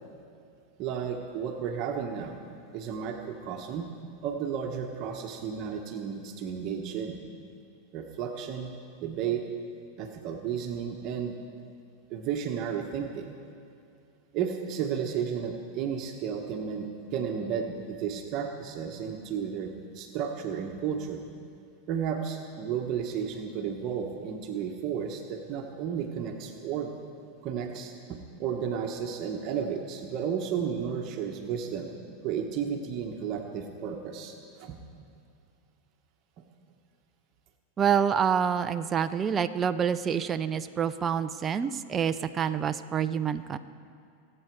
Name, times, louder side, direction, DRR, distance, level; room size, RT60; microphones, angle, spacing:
voice 1, 0.8-2.4 2.7-3.9 4.2-7.2 7.9-8.7 9.0-9.4 10.0-11.3 12.1-13.3 14.3-21.2 21.9-26.9 27.4-31.9 32.2-34.8 36.4-36.5, right 7 dB, 45° right, 2 dB, 1.3 m, -33 dB
voice 2, 37.8-43.6, right 7 dB, 25° right, 10 dB, 0.6 m, -27 dB
25.0 x 8.8 x 4.7 m, 2.5 s
hypercardioid pair, 115°, 0 cm